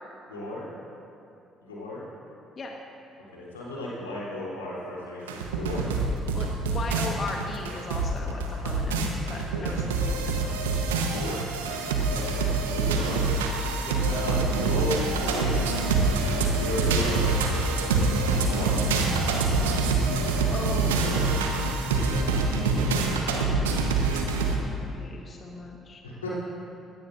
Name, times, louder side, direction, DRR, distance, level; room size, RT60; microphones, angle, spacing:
voice 1, 0.3-0.7 1.6-2.0 3.3-5.9 9.5-9.7 11.1-11.4 12.1-12.5 12.7-13.3 14.1-15.7 16.4-18.1 18.5-18.8 22.5-22.8 26.2-26.3, left 1 dB, 85° left, -6 dB, 3.4 m, -34 dB
sound 1, 5.3-24.5, right 3 dB, 80° right, 1.1 m, -25 dB
voice 2, 6.3-10.6 13.8-14.0 20.5-21.4 24.8-26.0, left 3 dB, 40° left, 1 dB, 1.4 m, -38 dB
20.5 x 17.0 x 2.6 m, 2.7 s
hypercardioid pair, 50°, 0 cm